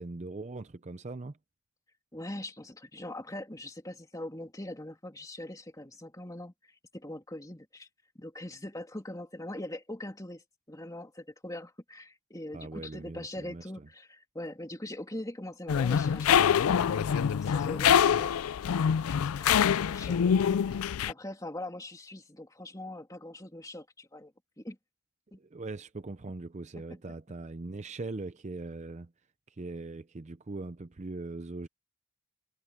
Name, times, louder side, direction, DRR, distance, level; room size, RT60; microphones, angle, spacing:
voice 1, 0.0-1.4 12.5-13.9 25.4-29.1 29.5-31.7, right 3 dB, 30° right, 0.5 m, -40 dB
voice 2, 2.1-7.9 8.1-18.4 19.2-24.3 24.6-24.8 25.3-25.4, left 1 dB, 15° left, 2.7 m, -42 dB
sound 1, 15.7-21.1, left 8 dB, 75° left, 0.4 m, -25 dB
head